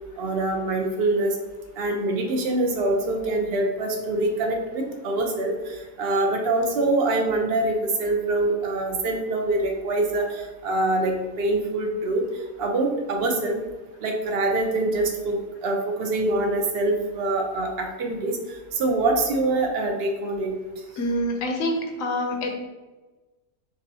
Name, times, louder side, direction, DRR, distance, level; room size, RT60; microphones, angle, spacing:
voice 1, 0.2-1.4 1.8-12.2 12.6-13.6 14.0-18.4 18.7-20.5, right 2 dB, 60° right, 2 dB, 0.6 m, -24 dB
voice 2, 21.0-22.5, left 1 dB, 65° left, 3 dB, 0.9 m, -26 dB
6.0 x 2.6 x 2.7 m, 1.2 s
omnidirectional pair, 1.7 m